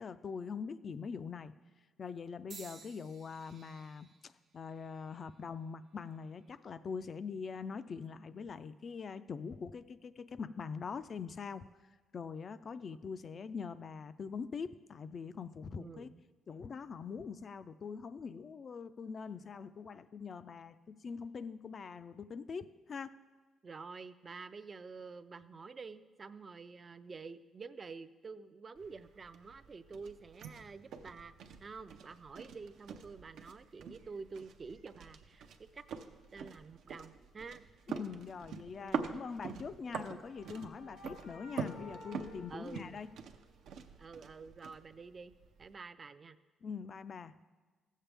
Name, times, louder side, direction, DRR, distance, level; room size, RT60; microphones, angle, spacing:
voice 1, 0.0-1.5 2.0-11.6 12.1-16.1 16.5-23.1 37.9-43.1 46.6-47.3, left 5 dB, 45° left, 14 dB, 0.4 m, -43 dB
sound 1, 2.5-6.6 7.3-7.8 8.7-8.9, right 5 dB, 60° right, 1.0 m, -58 dB
voice 2, 15.7-16.2 23.6-31.3 31.6-35.8 36.3-37.6 38.8-39.2 42.5-43.0 44.0-45.3 45.6-46.4, right 4 dB, 35° right, 12 dB, 0.4 m, -49 dB
sound 2, 28.7-45.7, right 6 dB, 75° right, 0.6 m, -45 dB
sound 3, 39.7-43.6, left 2 dB, 85° left, 2.3 m, -54 dB
15.5 x 7.4 x 3.4 m, 1.4 s
cardioid pair, 90°, 0 cm